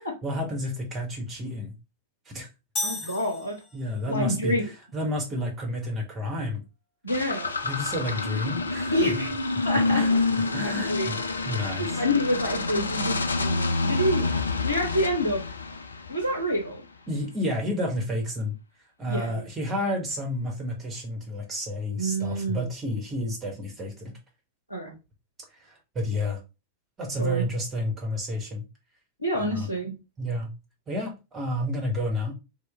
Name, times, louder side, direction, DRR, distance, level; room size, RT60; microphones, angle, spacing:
voice 1, 0.2-1.7 2.3-2.5 3.0-3.1 3.7-6.6 7.6-9.2 9.9-10.1 10.5-12.0 17.1-18.5 19.0-24.1 25.5-26.4 27.0-28.6 29.3-29.7 30.2-30.5 30.9-32.3, left 1 dB, 20° right, 1.1 m, -30 dB
sound 1, 2.8-4.1, left 2 dB, 25° left, 0.8 m, -34 dB
voice 2, 2.8-3.6 4.1-4.6 7.0-7.5 8.9-9.3 9.6-10.2 10.6-11.1 11.8-15.4 16.1-16.8 19.1-19.4 22.0-22.6 24.7-25.0 27.2-27.4 29.2-29.9, equal, 90° right, 0.6 m, -27 dB
sound 2, 7.1-16.6, left 3 dB, 75° left, 0.3 m, -28 dB
3.0 x 2.0 x 3.3 m
figure-of-eight pair, 90°, 0 cm